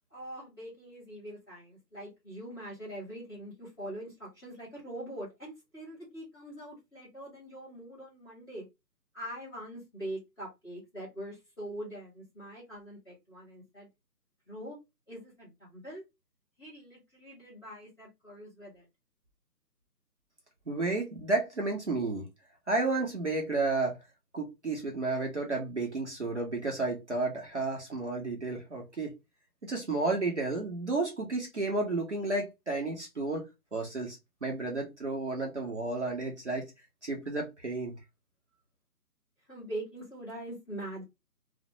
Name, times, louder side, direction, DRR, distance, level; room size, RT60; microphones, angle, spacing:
voice 1, 0.1-8.7 9.1-13.9 14.5-14.8 15.1-16.0 16.6-18.8 39.5-41.0, right 1 dB, 15° left, 1.1 m, -43 dB
voice 2, 20.7-22.2 22.7-24.0 24.3-29.1 29.6-33.4 33.7-36.7 37.0-37.9, right 3 dB, 45° right, 0.7 m, -32 dB
2.8 x 2.1 x 2.9 m
hypercardioid pair, 175°, 48 cm